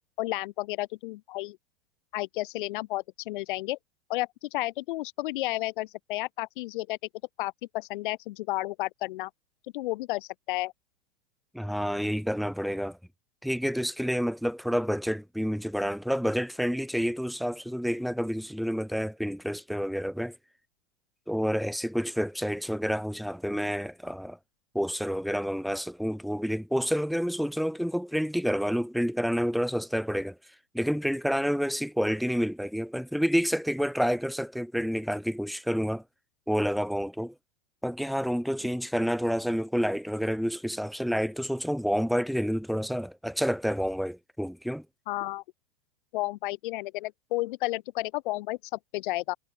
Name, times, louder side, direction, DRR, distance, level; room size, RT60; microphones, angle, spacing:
voice 1, 0.2-1.6 2.1-3.8 4.1-7.0 7.4-9.3 9.7-10.7 45.1-45.4 46.1-49.4, left 19 dB, 45° left, 1.5 m, -32 dB
voice 2, 11.5-13.0 13.4-20.4 21.3-24.4 24.7-30.4 30.7-36.0 36.5-37.3 37.8-44.8, equal, ahead, 1.2 m, -29 dB
hypercardioid pair, 155°, 34 cm